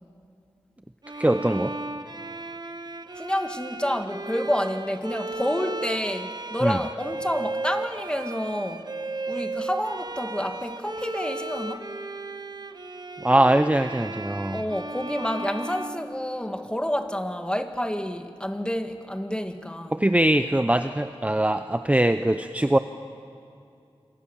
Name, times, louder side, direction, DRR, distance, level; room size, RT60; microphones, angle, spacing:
Bowed string instrument, 1.0-16.8, right 2 dB, 45° right, 1.2 m, -35 dB
voice 1, 1.1-1.7 6.6-6.8 13.2-14.6 19.9-22.8, right 1 dB, 15° right, 9 dB, 0.8 m, -22 dB
voice 2, 3.1-8.9 9.3-11.8 14.5-20.0, equal, 10° left, 7 dB, 1.9 m, -29 dB
27.0 x 24.5 x 7.3 m, 2.4 s
wide cardioid pair, 60°, 10 cm